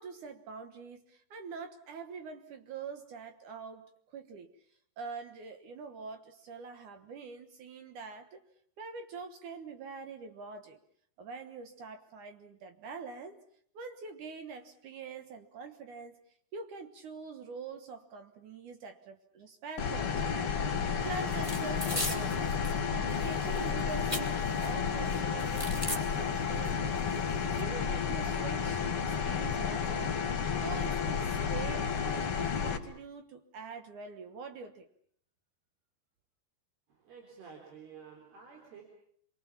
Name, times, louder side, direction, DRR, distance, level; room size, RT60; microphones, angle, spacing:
voice 1, 0.0-3.8 4.1-4.5 5.0-8.4 8.8-10.8 11.2-13.4 13.7-16.2 16.5-20.6 21.0-22.5 22.9-27.0 27.5-30.2 30.6-34.9, right 4 dB, 60° right, 8 dB, 2.4 m, -44 dB
sound 1, 19.8-32.8, left 6 dB, 45° left, 2.0 m, -32 dB
sound 2, 21.3-22.8 23.1-24.7 25.0-26.0 26.6-26.7 27.0-27.6, equal, 10° right, 1.7 m, -38 dB
voice 2, 36.9-38.8, right 6 dB, 80° right, 1 dB, 5.8 m, -51 dB
28.5 x 23.0 x 7.3 m, 0.64 s
omnidirectional pair, 4.5 m